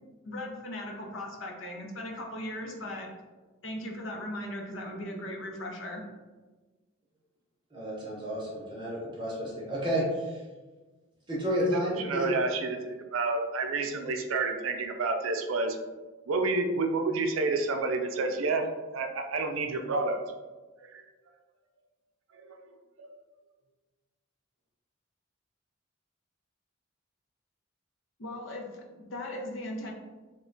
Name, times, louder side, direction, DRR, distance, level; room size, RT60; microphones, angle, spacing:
voice 1, 0.2-3.1 3.6-6.0 28.2-29.9, left 1 dB, 75° left, 0 dB, 0.6 m, -38 dB
voice 2, 7.7-10.4 11.3-12.3, equal, 25° right, -5 dB, 0.7 m, -31 dB
voice 3, 12.0-15.8 16.3-20.2 20.8-21.0 22.3-22.6 23.0-23.2, right 3 dB, 85° right, 5 dB, 0.4 m, -29 dB
3.1 x 2.2 x 3.7 m, 1.3 s
head